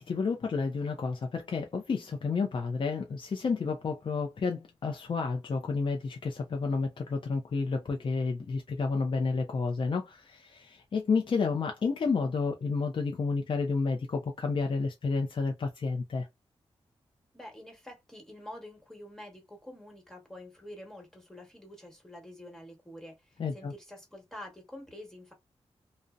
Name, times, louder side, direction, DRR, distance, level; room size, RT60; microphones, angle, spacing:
voice 1, 0.0-16.3 23.4-23.7, left 4 dB, 50° left, 0.4 m, -30 dB
voice 2, 17.3-25.3, left 1 dB, 5° left, 1.2 m, -47 dB
2.6 x 2.0 x 2.4 m
cardioid pair, 75°, 11 cm